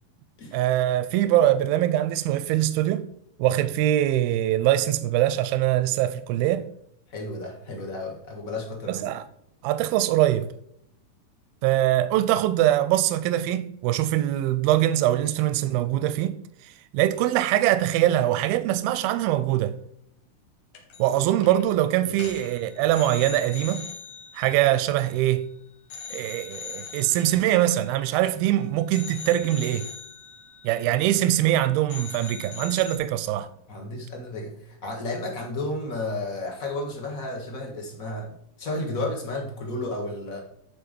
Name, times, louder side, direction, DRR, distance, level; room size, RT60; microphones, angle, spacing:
voice 1, 0.5-3.1 3.4-6.7 8.9-9.3 9.6-10.5 11.6-16.4 16.9-19.8 21.0-23.9 24.3-25.5 26.1-29.9 30.6-33.5, right 13 dB, 90° right, 2.4 m, -23 dB
voice 2, 7.1-9.1 33.7-40.4, left 2 dB, 65° left, 0.8 m, -32 dB
sound 1, 20.7-21.2 21.4-21.7 22.1-25.5 25.9-28.5 28.9-31.6 31.9-33.0, left 7 dB, 90° left, 3.6 m, -42 dB
11.5 x 4.6 x 5.2 m
omnidirectional pair, 4.2 m